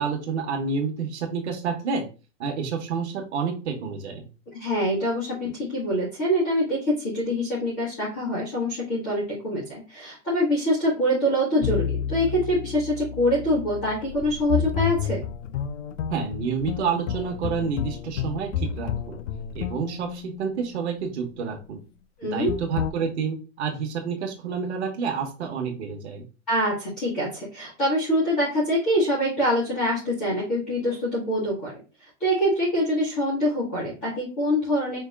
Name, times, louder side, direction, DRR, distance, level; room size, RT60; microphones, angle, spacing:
voice 1, 0.0-2.1 2.4-4.3 16.1-19.2 19.5-21.8 22.3-26.2, right 6 dB, 65° right, 3 dB, 1.2 m, -29 dB
voice 2, 4.5-15.2 22.2-22.5 26.5-31.7 32.2-35.0, equal, ahead, -5 dB, 0.3 m, -25 dB
sound 1, 11.6-21.0 22.5-22.9, left 8 dB, 75° left, 0.5 m, -31 dB
5.3 x 2.3 x 3.4 m, 0.33 s
supercardioid pair, 180°, 37 cm